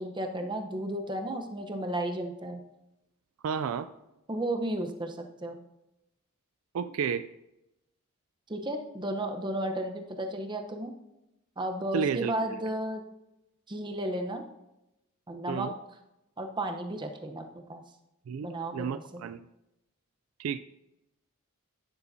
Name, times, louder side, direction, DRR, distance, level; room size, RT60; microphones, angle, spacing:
voice 1, 0.0-2.6 4.3-5.6 8.5-10.9 11.6-13.0 13.7-14.4 15.3-15.7 16.4-17.8 18.4-19.2, right 1 dB, 20° right, 4 dB, 0.8 m, -33 dB
voice 2, 3.4-3.9 6.7-7.3 11.9-12.3 15.5-15.7 18.3-18.5 18.7-19.4 20.4-20.6, right 6 dB, 70° right, 12 dB, 0.3 m, -31 dB
11.0 x 9.7 x 2.7 m, 0.92 s
head